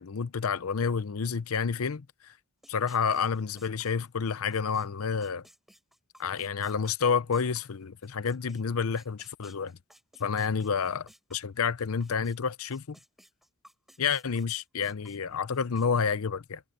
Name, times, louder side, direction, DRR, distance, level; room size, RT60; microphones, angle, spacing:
voice 1, 0.0-2.3 2.7-5.4 6.2-9.8 10.2-13.0 14.0-16.6, left 6 dB, 85° left, 0.7 m, -29 dB
sound 1, 2.6-8.6 9.0-12.4 12.7-15.9, equal, ahead, 5.2 m, -57 dB
head